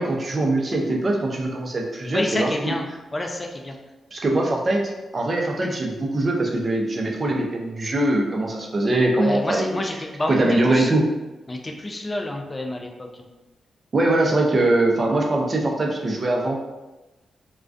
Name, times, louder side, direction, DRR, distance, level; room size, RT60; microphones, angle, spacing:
voice 1, 0.0-2.7 4.1-4.8 5.1-9.8 10.3-11.1 13.9-16.6, right 2 dB, 40° right, 0 dB, 0.4 m, -22 dB
voice 2, 2.1-2.9 3.1-3.8 5.6-5.8 9.2-10.9 11.5-13.3, left 1 dB, 25° left, 2 dB, 0.4 m, -29 dB
2.3 x 2.2 x 2.4 m, 1.1 s
cardioid pair, 80°, 0 cm